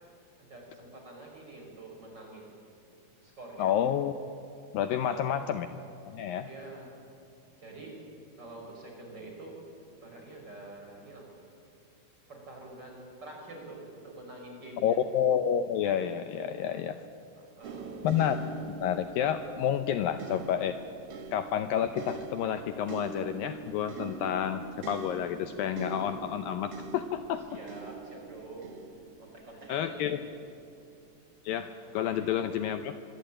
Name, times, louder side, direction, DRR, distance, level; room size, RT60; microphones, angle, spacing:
voice 1, 0.4-2.5 3.2-3.7 4.9-5.4 6.5-7.0 7.5-7.9 8.4-9.6 10.0-11.3 12.3-15.0 17.4-17.9 27.5-28.6 29.2-30.2 31.8-32.6, right 2 dB, 25° right, 0 dB, 6.1 m, -47 dB
voice 2, 3.6-4.1 4.7-5.7 6.1-6.5 14.8-17.0 18.0-18.4 18.8-20.8 21.3-27.4 29.7-30.2 31.4-32.9, left 9 dB, 75° left, 9 dB, 2.3 m, -29 dB
sound 1, 17.6-30.7 31.5-31.7, right 5 dB, 60° right, 1.5 m, -44 dB
25.5 x 22.5 x 9.0 m, 2.5 s
omnidirectional pair, 4.5 m